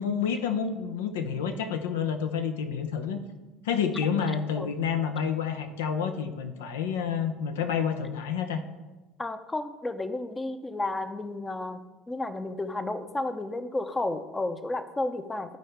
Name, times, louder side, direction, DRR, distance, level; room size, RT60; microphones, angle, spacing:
voice 1, 0.0-3.2 3.6-8.6, left 7 dB, 80° left, 8 dB, 0.6 m, -29 dB
voice 2, 9.2-11.8 12.1-15.6, left 2 dB, 15° left, 10 dB, 0.6 m, -32 dB
12.0 x 4.5 x 3.3 m, 1.2 s
hypercardioid pair, 70°, 0 cm